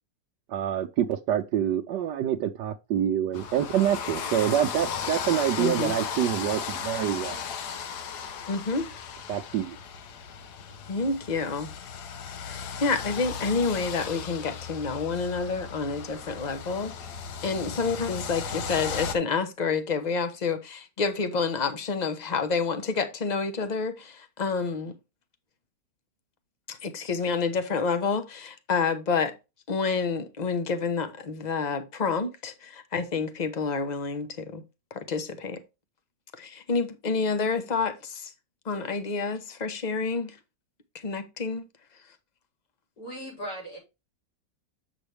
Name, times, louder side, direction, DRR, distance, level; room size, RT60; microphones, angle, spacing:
voice 1, 0.5-7.4 9.3-9.8, right 10 dB, 80° right, 1.3 m, -26 dB
sound 1, 3.3-19.2, left 6 dB, 65° left, 1.4 m, -36 dB
voice 2, 5.6-5.9 8.5-8.9 10.9-11.7 12.4-16.9 17.4-24.9 26.7-29.3 29.7-34.6 34.9-35.6 36.4-38.3 38.6-40.4 40.9-41.7, left 4 dB, 30° left, 0.8 m, -28 dB
voice 3, 43.0-43.8, equal, 50° left, 4.6 m, -37 dB
7.8 x 6.3 x 3.3 m
omnidirectional pair, 1.9 m